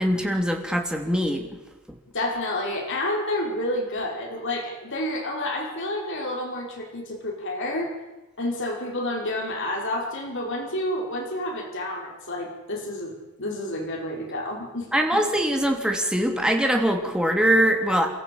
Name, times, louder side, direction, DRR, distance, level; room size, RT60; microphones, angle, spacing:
voice 1, 0.0-1.5 14.9-18.1, right 1 dB, 5° right, 3 dB, 3.0 m, -22 dB
voice 2, 2.1-7.9 8.4-13.1 13.4-14.9, left 1 dB, 55° left, 0 dB, 5.3 m, -29 dB
29.0 x 14.0 x 8.8 m, 1.1 s
head